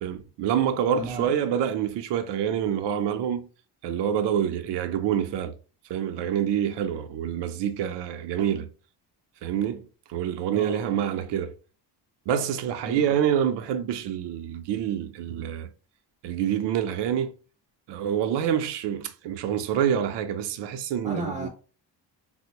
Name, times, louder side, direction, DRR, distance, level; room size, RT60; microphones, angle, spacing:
voice 1, 0.0-3.5 3.8-5.6 5.9-8.7 9.4-11.5 12.3-15.7 16.2-17.3 17.9-21.5, right 9 dB, 70° right, 0.5 m, -27 dB
voice 2, 0.9-1.4 10.5-10.9 12.8-13.2 21.0-21.5, right 1 dB, 10° right, 0.6 m, -35 dB
4.2 x 2.0 x 2.9 m
cardioid pair, 170°, 44 cm